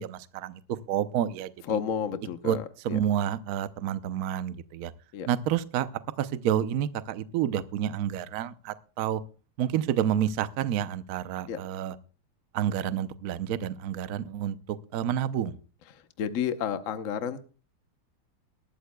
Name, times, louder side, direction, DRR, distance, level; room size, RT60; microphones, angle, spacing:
voice 1, 0.0-1.5 2.4-2.6 2.8-4.9 5.3-5.9 6.2-9.2 9.6-11.9 12.5-14.6 14.9-15.5, right 10 dB, 70° right, 13 dB, 0.9 m, -29 dB
voice 2, 1.7-3.0 5.1-5.3 11.5-11.6 15.9-17.4, left 8 dB, 55° left, 9 dB, 0.9 m, -31 dB
20.0 x 13.0 x 2.2 m, 0.36 s
omnidirectional pair, 2.4 m